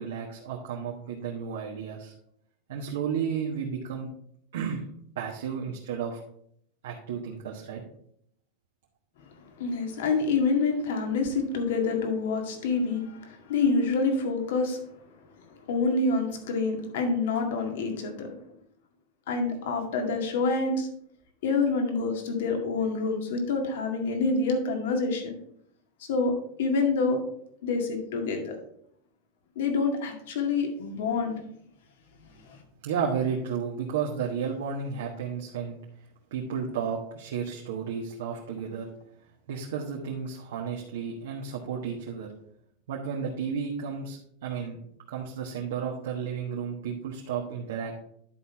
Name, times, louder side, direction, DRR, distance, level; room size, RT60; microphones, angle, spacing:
voice 1, 0.0-2.1 2.7-4.1 4.5-4.8 5.1-6.2 6.8-7.8 32.8-36.1 36.3-38.9 39.5-42.3 42.9-44.8 45.1-48.0, right 6 dB, 80° right, -1 dB, 1.3 m, -32 dB
voice 2, 9.6-14.8 15.7-18.3 19.3-20.9 21.4-25.4 26.0-26.3 26.6-27.2 27.6-28.5 29.6-31.4 32.4-32.6, left 4 dB, 75° left, 3 dB, 1.9 m, -27 dB
10.5 x 4.3 x 4.6 m, 0.69 s
supercardioid pair, 125°, 0 cm